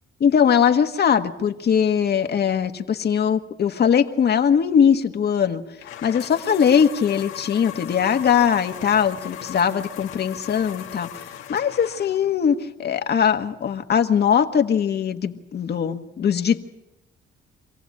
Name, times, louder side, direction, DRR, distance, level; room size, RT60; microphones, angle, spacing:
voice 1, 0.2-5.6 6.0-16.6, left 7 dB, 55° left, 7 dB, 1.5 m, -20 dB
sound 1, 5.8-12.4, left 10 dB, 90° left, 1.6 m, -38 dB
26.0 x 15.5 x 8.5 m, 0.94 s
cardioid pair, 90°, 20 cm